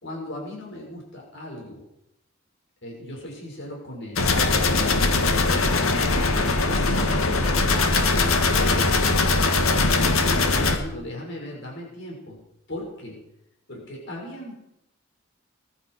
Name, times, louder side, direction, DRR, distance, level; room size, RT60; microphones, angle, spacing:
voice 1, 0.0-1.8 2.8-4.3 5.2-7.5 8.5-12.4 12.7-13.2 13.7-14.6, left 1 dB, 60° left, -1 dB, 5.9 m, -37 dB
sound 1, 4.2-10.8, left 3 dB, 90° left, 1.8 m, -21 dB
20.5 x 12.0 x 4.8 m, 0.82 s
head